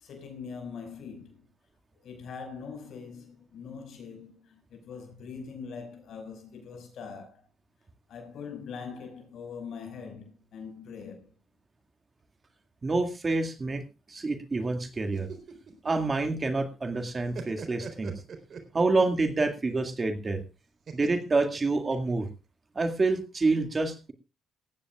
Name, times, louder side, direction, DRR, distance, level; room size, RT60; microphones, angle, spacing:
voice 1, 0.0-1.4 2.0-7.4 8.1-11.3, left 5 dB, 70° left, 5.5 m, -42 dB
voice 2, 12.8-13.8 14.1-15.3 15.8-18.2 18.7-20.4 20.9-22.3 22.8-24.1, right 3 dB, 30° right, 2.2 m, -27 dB
sound 1, 15.0-16.7 17.0-19.2 20.9-22.3, right 5 dB, 55° right, 3.8 m, -43 dB
19.0 x 15.5 x 2.4 m
cardioid pair, 90°, 0 cm